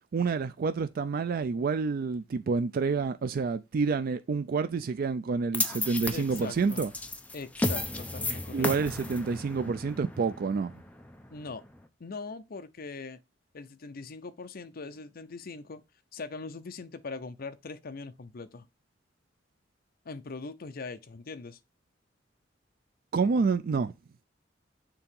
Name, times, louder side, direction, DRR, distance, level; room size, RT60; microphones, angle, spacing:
voice 1, 0.1-6.9 8.5-10.7 23.1-23.9, right 4 dB, 50° right, 0.4 m, -28 dB
sound 1, 5.5-11.8, left 2 dB, 10° left, 0.6 m, -34 dB
voice 2, 6.1-6.8 7.3-8.7 11.3-11.6 12.0-13.2 13.5-15.8 16.1-18.7 20.0-21.6, left 4 dB, 55° left, 0.6 m, -41 dB
6.9 x 2.9 x 5.3 m
head